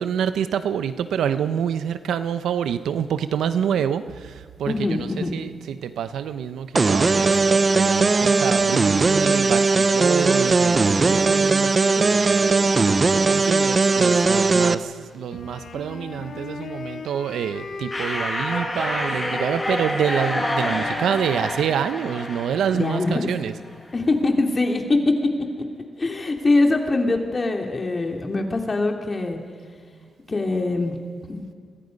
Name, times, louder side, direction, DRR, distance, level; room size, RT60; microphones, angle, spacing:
voice 1, 0.0-12.7 13.3-23.5 30.0-30.1, right 8 dB, 90° right, 11 dB, 0.9 m, -27 dB
voice 2, 4.6-5.3 16.2-16.4 22.7-23.3 23.9-24.8 26.0-29.4 30.3-31.0 31.3-31.4, left 2 dB, 35° left, 2 dB, 2.9 m, -23 dB
sound 1, 6.8-14.8, right 3 dB, 35° right, 0.7 m, -18 dB
Wind instrument woodwind instrument, 15.3-23.2, left 4 dB, 70° left, 3.0 m, -38 dB
sound 2, 17.9-23.4, left 1 dB, 15° left, 7.2 m, -28 dB
28.5 x 23.5 x 5.4 m, 2.1 s
cardioid pair, 85°, 0 cm